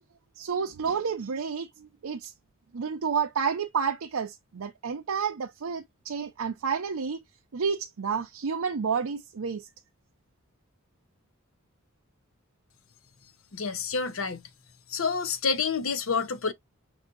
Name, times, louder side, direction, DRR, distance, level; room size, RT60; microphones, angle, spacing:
voice 1, 0.4-2.3 2.7-7.2 7.5-9.6, right 6 dB, 85° right, 0.5 m, -30 dB
voice 2, 13.5-14.4 14.9-16.5, left 5 dB, 70° left, 0.9 m, -28 dB
6.0 x 2.7 x 2.4 m
head